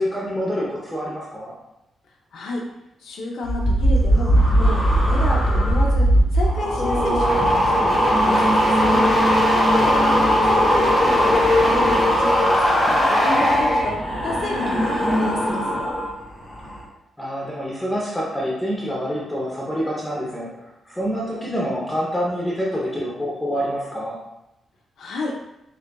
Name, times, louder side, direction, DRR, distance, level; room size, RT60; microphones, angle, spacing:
voice 1, 0.0-1.6 9.7-9.9 17.2-24.2, equal, 5° left, -5 dB, 0.7 m, -27 dB
voice 2, 2.3-2.6 3.0-9.0 9.5-16.0 25.0-25.4, left 2 dB, 80° left, -1 dB, 0.6 m, -30 dB
sound 1, 3.4-16.1 16.4-16.8, equal, 30° left, 1.0 m, -18 dB
6.7 x 2.4 x 2.2 m, 0.88 s
wide cardioid pair, 155°, 0 cm